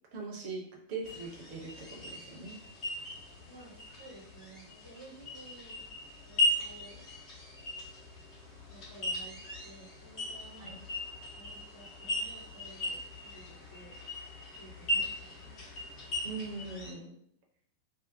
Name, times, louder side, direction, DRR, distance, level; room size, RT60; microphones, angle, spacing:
voice 1, 0.1-0.6 0.9-2.6 10.6-10.8 16.2-17.1, right 4 dB, 45° right, -1 dB, 0.7 m, -41 dB
sound 1, 1.0-16.9, left 1 dB, 35° left, 1.0 m, -38 dB
voice 2, 3.5-5.9 6.2-7.0 8.7-9.4 9.6-10.8 11.4-14.1 14.5-15.6, right 1 dB, 80° left, -4 dB, 1.0 m, -54 dB
2.6 x 2.1 x 2.6 m, 0.71 s
figure-of-eight pair, 90°, 0 cm